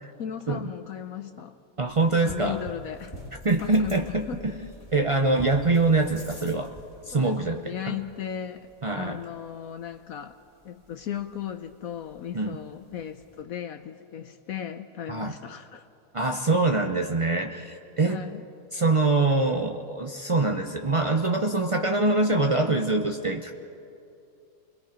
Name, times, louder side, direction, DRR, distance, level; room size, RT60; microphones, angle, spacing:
voice 1, 0.2-1.6 2.2-3.2 3.6-4.5 7.1-10.4 10.6-15.9 18.0-18.5, left 9 dB, 65° left, 8 dB, 1.0 m, -36 dB
voice 2, 1.8-2.6 3.4-6.7 7.1-8.0 8.8-9.2 12.3-12.6 15.1-15.3 16.1-18.2 18.7-23.5, right 2 dB, 50° right, 4 dB, 0.3 m, -24 dB
sound 1, 1.9-13.4, equal, 15° left, 2.5 m, -47 dB
29.5 x 22.0 x 5.1 m, 2.7 s
omnidirectional pair, 1.7 m